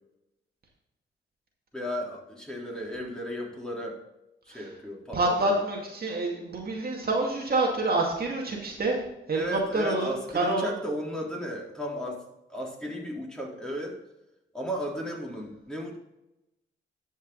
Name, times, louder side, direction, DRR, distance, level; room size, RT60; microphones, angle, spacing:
voice 1, 1.7-4.0 4.5-5.2 5.5-5.6 9.3-12.2 12.5-14.0 14.5-16.0, equal, 5° left, -2 dB, 3.7 m, -34 dB
voice 2, 5.1-9.0 9.3-10.1 10.3-10.7, right 2 dB, 50° right, -1 dB, 2.2 m, -27 dB
12.0 x 5.4 x 4.0 m, 0.90 s
supercardioid pair, 60°, 21 cm